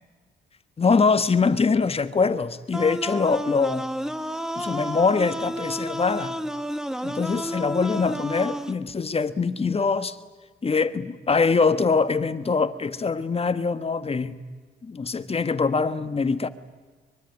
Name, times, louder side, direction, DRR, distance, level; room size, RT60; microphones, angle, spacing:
voice 1, 0.8-3.9 4.5-6.3 7.0-10.2 10.6-14.4 14.8-16.5, left 4 dB, 30° left, 1.4 m, -23 dB
sound 1, 2.7-8.7, equal, 5° right, 1.4 m, -31 dB
24.0 x 22.5 x 9.6 m
cardioid pair, 90°, 20 cm